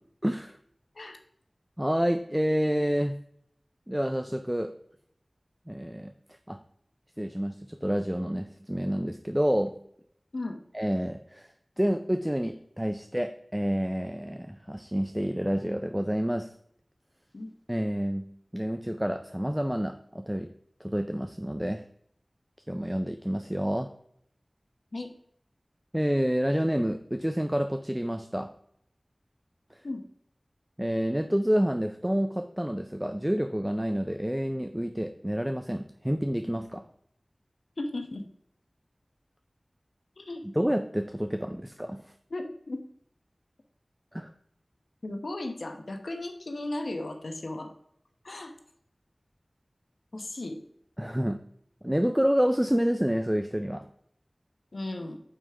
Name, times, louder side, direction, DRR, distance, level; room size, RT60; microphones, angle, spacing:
voice 1, 0.2-0.6 1.8-3.2 3.9-4.7 5.7-6.1 6.5-6.6 7.2-9.8 10.7-16.5 17.7-18.3 18.5-20.5 20.8-21.8 22.7-23.9 25.9-28.5 30.8-36.8 40.4-42.0 44.1-44.3 51.0-51.4 51.8-53.9, equal, 10° right, 8 dB, 0.5 m, -28 dB
voice 2, 37.8-38.2 40.2-40.4 42.3-42.8 45.0-47.7 48.2-48.5 50.1-50.6 54.7-55.2, left 2 dB, 85° left, 4 dB, 0.8 m, -35 dB
8.8 x 3.4 x 4.9 m, 0.69 s
wide cardioid pair, 50°, 0 cm